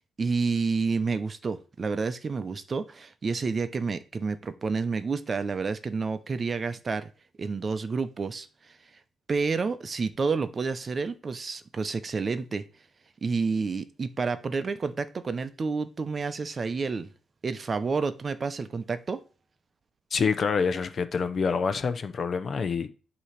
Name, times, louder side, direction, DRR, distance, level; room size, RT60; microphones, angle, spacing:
voice 1, 0.2-7.1 7.4-8.5 9.3-12.6 13.2-17.1 17.4-19.2, right 4 dB, 35° right, 0.7 m, -29 dB
voice 2, 20.1-22.9, left 5 dB, 45° left, 0.8 m, -27 dB
8.1 x 3.0 x 5.8 m
cardioid pair, 90°, 0 cm